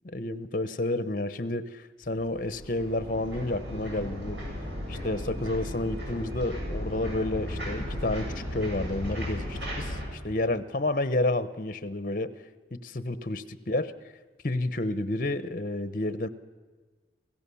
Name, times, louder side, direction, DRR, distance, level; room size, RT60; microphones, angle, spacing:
voice 1, 0.0-4.4 4.9-12.3 12.7-13.9 14.4-16.3, left 2 dB, 50° left, 13 dB, 0.9 m, -30 dB
sound 1, 2.0-10.1, equal, 85° right, 7.4 m, -35 dB
28.5 x 16.0 x 7.1 m, 1.4 s
head